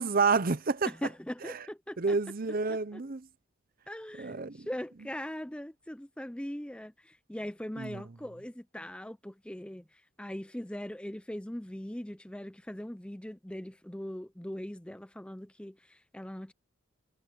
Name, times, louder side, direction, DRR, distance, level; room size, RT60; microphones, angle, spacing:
voice 1, 0.0-0.9 1.4-1.6 2.0-3.3 4.2-4.7 7.8-8.0, right 4 dB, 45° right, 0.8 m, -29 dB
voice 2, 0.8-2.2 2.7-3.0 3.9-16.5, left 1 dB, 5° left, 0.5 m, -40 dB
head